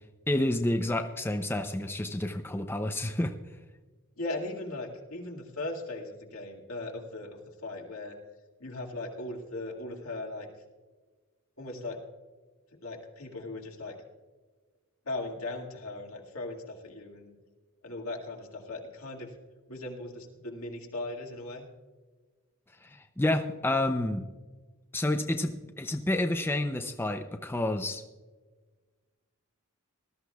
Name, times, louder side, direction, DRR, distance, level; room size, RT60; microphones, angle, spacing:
voice 1, 0.3-3.3 22.8-24.2 24.9-28.0, left 1 dB, 10° left, 6 dB, 0.5 m, -29 dB
voice 2, 4.2-8.2 8.6-10.5 11.6-12.0 12.8-14.0 15.1-17.3 17.8-19.3 19.7-21.7, left 2 dB, 75° left, 0 dB, 2.1 m, -38 dB
19.5 x 13.0 x 2.3 m, 1.3 s
head